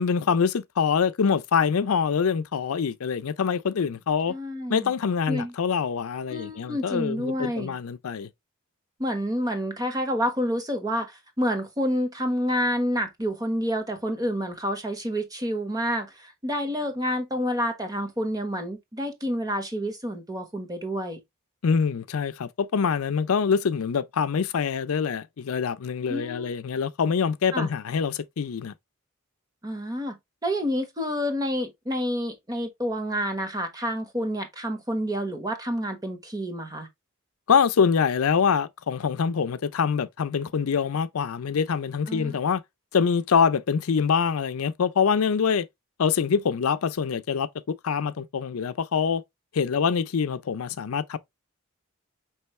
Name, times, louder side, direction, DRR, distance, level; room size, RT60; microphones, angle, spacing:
voice 1, 0.0-4.3 4.7-8.3 21.6-28.7 37.5-42.6 42.9-45.7 46.0-49.2 49.5-51.2, left 6 dB, 85° left, 0.5 m, -25 dB
voice 2, 4.3-4.9 5.3-5.5 6.3-7.8 9.0-21.2 26.1-26.5 27.5-27.7 29.6-30.2 30.4-36.9 42.1-42.4, equal, 20° right, 1.1 m, -28 dB
5.5 x 3.1 x 3.1 m
head